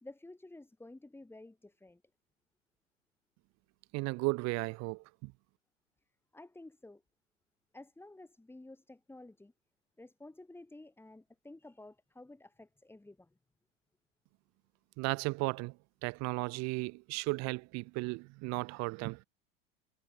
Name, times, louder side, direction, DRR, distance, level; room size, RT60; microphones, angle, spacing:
voice 1, 0.0-2.0 6.3-7.0 7.7-9.5 10.0-13.3, left 2 dB, 5° left, 3.9 m, -52 dB
voice 2, 3.9-5.3 15.0-15.8 16.0-19.2, right 25 dB, 60° right, 2.1 m, -35 dB
hypercardioid pair, 95°, 30 cm